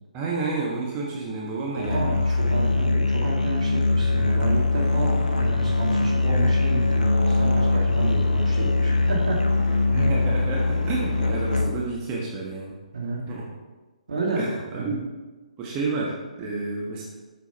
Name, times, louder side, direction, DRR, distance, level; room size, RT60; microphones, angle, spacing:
voice 1, 0.1-2.2 9.9-12.8 13.3-13.5 14.3-15.0 15.6-17.0, right 3 dB, 25° right, -3 dB, 1.3 m, -30 dB
Musical instrument, 1.8-12.0, left 3 dB, 85° left, 0.9 m, -22 dB
voice 2, 1.8-9.8 12.9-13.2 14.1-14.5 14.8-15.0, right 2 dB, 65° right, -2 dB, 2.3 m, -30 dB
sound 1, 4.1-11.7, equal, 5° right, 2.2 m, -37 dB
7.6 x 6.0 x 4.5 m, 1.2 s
figure-of-eight pair, 135°, 4 cm